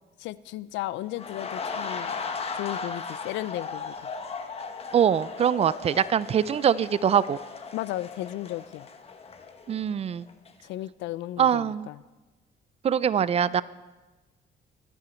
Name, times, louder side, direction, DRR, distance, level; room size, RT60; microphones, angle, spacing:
voice 1, 0.2-2.1 2.5-3.9 7.7-8.9 10.6-12.0, left 15 dB, 90° left, 18 dB, 0.5 m, -34 dB
sound 1, 1.1-10.0 10.3-10.5, left 5 dB, 35° left, 1.2 m, -37 dB
voice 2, 4.9-7.4 9.7-10.3 11.4-11.9 12.8-13.6, right 8 dB, 35° right, 18 dB, 0.4 m, -23 dB
23.5 x 11.0 x 4.4 m, 1.2 s
cardioid pair, 140°, 18 cm